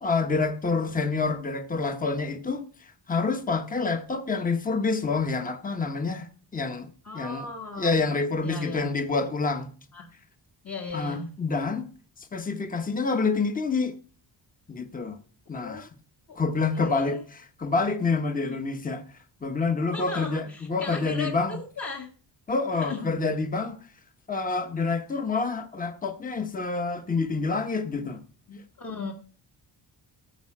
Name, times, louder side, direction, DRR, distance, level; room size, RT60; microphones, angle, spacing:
voice 1, 0.0-7.5 7.8-9.7 10.9-11.9 12.3-14.0 14.7-15.2 15.5-15.9 16.3-17.2 17.6-19.0 19.4-21.6 22.5-23.8 24.3-28.2, left 4 dB, 20° left, 1.1 m, -27 dB
voice 2, 7.0-8.1 8.4-8.9 9.9-10.1 10.6-11.3 15.5-15.8 16.3-16.4 16.7-17.2 18.4-18.6 19.9-22.1 22.7-23.1 28.5-29.1, left 3 dB, 40° left, 1.8 m, -37 dB
14.5 x 5.6 x 7.4 m
wide cardioid pair, 145°, 43 cm